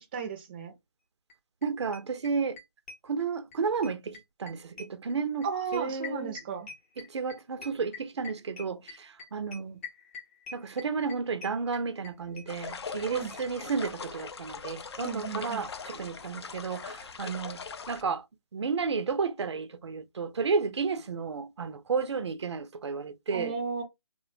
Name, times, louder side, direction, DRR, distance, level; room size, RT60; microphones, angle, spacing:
voice 1, 0.1-0.7 5.4-6.7 13.1-13.3 15.0-15.6 23.3-23.8, right 5 dB, 25° right, 0.4 m, -34 dB
sound 1, 1.3-1.4 1.6-1.7 1.9-3.6 3.8-13.1 13.3-13.4 13.6-13.7 13.9-14.0, left 5 dB, 30° left, 0.7 m, -44 dB
voice 2, 1.6-2.6 3.0-6.4 7.0-9.8 10.5-18.2 18.5-23.5, right 5 dB, 85° right, 0.4 m, -32 dB
sound 2, 12.5-18.0, left 5 dB, 70° left, 0.4 m, -41 dB
2.4 x 2.1 x 2.5 m
hypercardioid pair, 155°, 14 cm